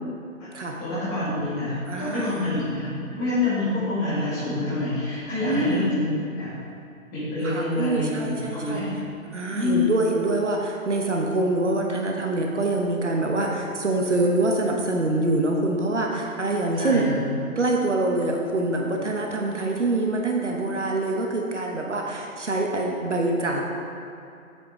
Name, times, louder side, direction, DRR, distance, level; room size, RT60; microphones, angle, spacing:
voice 1, 0.8-6.1 6.4-6.5 7.1-8.9 9.5-10.0 16.7-17.2, left 2 dB, 10° left, -11 dB, 2.0 m, -27 dB
voice 2, 1.9-2.5 5.4-5.9 7.4-8.8 9.3-17.1 17.6-23.6, right 2 dB, 55° right, 0 dB, 1.1 m, -25 dB
9.3 x 8.0 x 3.7 m, 2.7 s
figure-of-eight pair, 145°, 42 cm